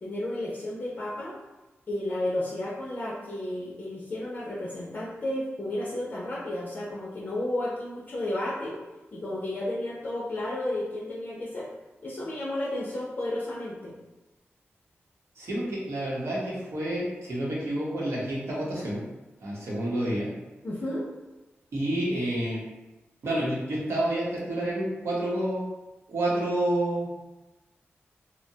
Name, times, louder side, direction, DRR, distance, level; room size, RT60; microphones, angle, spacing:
voice 1, 0.0-1.4 1.9-8.8 9.1-11.7 12.0-13.9 20.6-21.1, left 1 dB, 40° left, -5 dB, 0.4 m, -32 dB
voice 2, 15.4-19.0 19.4-20.3 21.7-22.6 23.2-25.7 26.1-27.1, right 1 dB, 75° right, -5 dB, 0.8 m, -29 dB
2.7 x 2.1 x 2.7 m, 1.1 s
wide cardioid pair, 140°, 4 cm